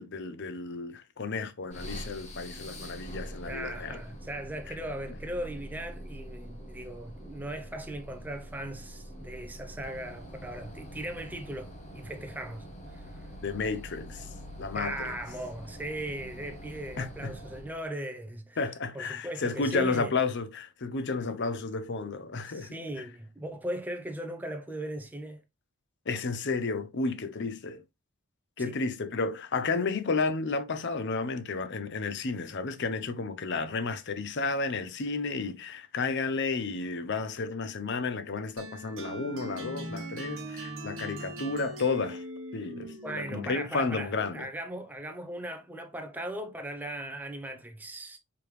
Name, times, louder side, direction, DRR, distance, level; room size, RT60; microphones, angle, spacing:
voice 1, 0.0-4.0 13.4-14.3 14.6-15.1 17.0-17.3 18.6-23.0 26.1-27.8 28.6-42.2 42.5-44.5, left 4 dB, 50° left, 0.6 m, -32 dB
sound 1, 1.7-17.8, equal, 30° left, 1.1 m, -44 dB
voice 2, 3.4-13.3 14.7-18.6 18.9-20.2 22.5-25.4 28.6-28.7 43.0-48.2, right 1 dB, 10° right, 0.6 m, -38 dB
sound 2, 38.6-43.7, right 1 dB, 60° right, 1.2 m, -40 dB
4.8 x 3.5 x 3.1 m
head